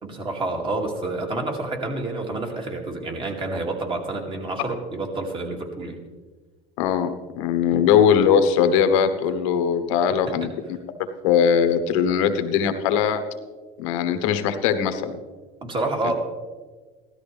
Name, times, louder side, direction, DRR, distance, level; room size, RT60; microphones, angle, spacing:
voice 1, 0.0-6.0 10.3-10.5 15.6-16.1, right 2 dB, 30° right, 2 dB, 2.5 m, -28 dB
voice 2, 6.8-10.5 11.2-13.2 13.8-15.2, left 7 dB, 85° left, 9 dB, 1.1 m, -20 dB
16.0 x 13.0 x 3.4 m, 1.4 s
supercardioid pair, 115°, 16 cm